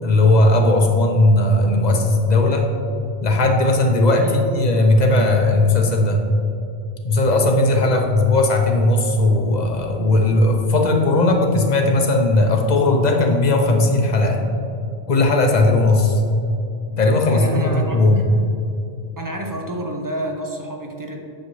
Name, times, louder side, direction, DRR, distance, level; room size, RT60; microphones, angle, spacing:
voice 1, 0.0-2.7 3.2-4.3 4.5-6.2 7.0-14.4 15.1-16.2 17.0-18.2, left 2 dB, 40° left, 2 dB, 0.9 m, -17 dB
voice 2, 16.9-18.2 19.2-21.2, right 1 dB, 20° right, 1 dB, 0.6 m, -30 dB
8.5 x 6.7 x 3.2 m, 2.7 s
omnidirectional pair, 1.2 m